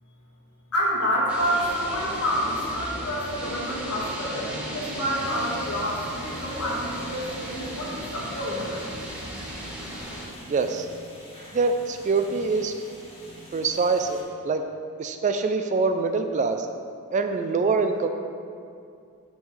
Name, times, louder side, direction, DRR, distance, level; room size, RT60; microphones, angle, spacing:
voice 1, 0.7-8.8, equal, 70° left, -5 dB, 1.6 m, -28 dB
sound 1, 1.3-10.2, equal, 5° right, 1.2 m, -36 dB
sound 2, 5.1-14.2, left 1 dB, 30° left, 1.6 m, -46 dB
voice 2, 10.5-10.9 11.5-12.7 13.5-14.6 15.0-16.7 17.1-18.1, right 4 dB, 35° right, 6 dB, 0.3 m, -24 dB
7.9 x 5.4 x 3.2 m, 2.4 s
head